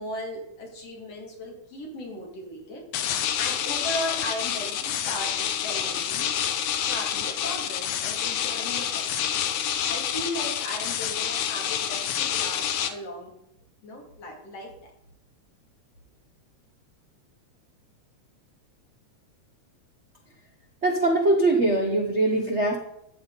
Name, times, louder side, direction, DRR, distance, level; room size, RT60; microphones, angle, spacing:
voice 1, 0.0-2.9 3.2-6.3 6.8-13.3 13.8-14.9, left 1 dB, 60° left, -1 dB, 3.9 m, -37 dB
sound 1, 2.9-12.9, left 9 dB, 90° left, 2.3 m, -28 dB
voice 2, 20.8-22.8, right 2 dB, 85° right, 2 dB, 0.6 m, -22 dB
14.0 x 8.9 x 4.1 m, 0.80 s
omnidirectional pair, 3.3 m